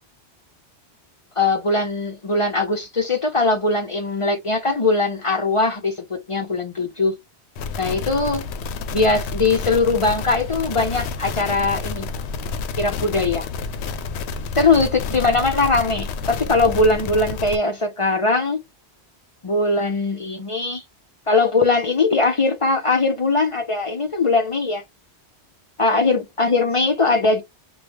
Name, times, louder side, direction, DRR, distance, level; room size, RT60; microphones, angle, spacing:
voice 1, 1.4-7.1 7.8-8.4 8.9-12.1 12.8-13.5 14.6-18.6 19.4-20.8 21.3-24.8 25.8-27.4, left 3 dB, 40° left, 0.5 m, -20 dB
sound 1, 7.6-17.6, left 4 dB, 75° left, 0.8 m, -29 dB
3.1 x 2.3 x 3.3 m
omnidirectional pair, 1.1 m